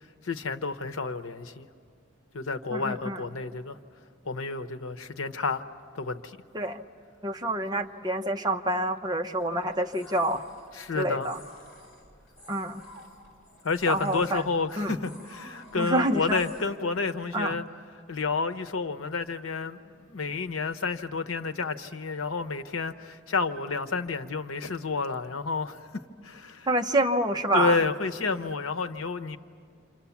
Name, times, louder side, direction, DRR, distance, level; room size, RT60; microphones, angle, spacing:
voice 1, 0.2-1.7 2.3-3.8 4.2-5.6 5.9-6.4 10.7-11.3 13.6-17.6 18.1-26.7 27.5-29.4, left 4 dB, 90° left, 0.9 m, -30 dB
voice 2, 2.7-3.2 6.5-6.8 7.2-10.4 10.9-11.4 12.5-12.8 13.9-14.4 14.8-14.9 15.7-16.4 17.3-17.5 26.7-27.8, right 1 dB, 20° right, 0.9 m, -27 dB
sound 1, 9.4-16.6, left 1 dB, 40° left, 5.3 m, -51 dB
28.5 x 26.5 x 7.2 m
head